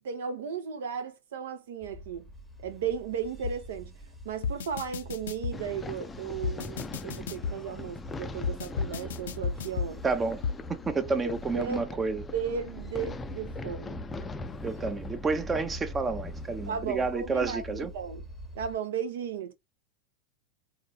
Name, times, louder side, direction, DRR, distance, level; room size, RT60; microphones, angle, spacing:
voice 1, 0.0-2.3 2.6-3.9 4.2-10.0 11.2-11.8 12.1-14.0 16.7-18.2 18.5-19.5, right 7 dB, 75° right, 0.8 m, -35 dB
sound 1, 1.8-18.8, equal, 5° right, 1.1 m, -44 dB
sound 2, 3.4-3.6 4.4-5.6 6.4-7.6 8.4-9.9 10.4-10.6, left 6 dB, 75° left, 0.5 m, -32 dB
sound 3, 5.5-16.7, left 4 dB, 20° left, 0.4 m, -42 dB
voice 2, 10.0-10.4 10.7-12.2 14.6-17.9, right 4 dB, 20° right, 0.7 m, -30 dB
3.8 x 2.6 x 2.3 m
hypercardioid pair, 100°, 0 cm